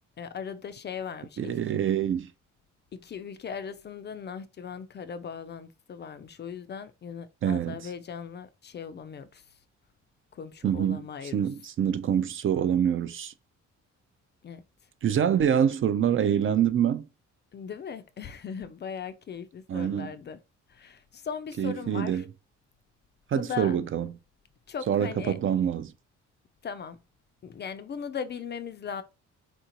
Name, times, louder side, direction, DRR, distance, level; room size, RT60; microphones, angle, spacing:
voice 1, 0.2-1.6 2.9-9.5 10.3-11.5 14.4-14.6 17.5-20.4 20.7-22.3 23.3-23.8 24.7-25.4 26.6-27.0 27.4-29.0, left 7 dB, 35° left, 0.4 m, -38 dB
voice 2, 1.4-2.3 7.4-7.8 10.6-11.0 11.3-13.3 15.0-17.1 19.7-20.1 21.6-22.2 23.3-24.1 24.9-25.9, right 9 dB, 45° right, 0.4 m, -25 dB
3.6 x 2.6 x 2.8 m
cardioid pair, 90°, 30 cm